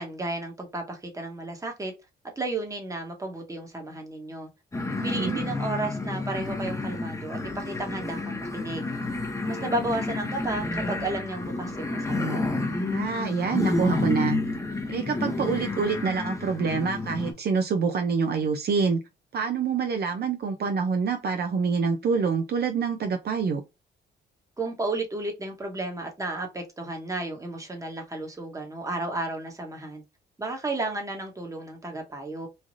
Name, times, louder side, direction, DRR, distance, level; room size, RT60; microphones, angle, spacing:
voice 1, 0.0-1.9 2.4-4.5 5.0-8.9 9.5-12.5 24.6-30.0 30.4-32.5, right 2 dB, 15° right, 1.1 m, -33 dB
sound 1, 4.7-17.3, left 2 dB, 15° left, 0.8 m, -30 dB
voice 2, 5.0-5.4 12.9-14.4 14.9-19.0 19.3-23.6, right 5 dB, 55° right, 0.6 m, -26 dB
3.3 x 2.4 x 2.6 m
cardioid pair, 90°, 20 cm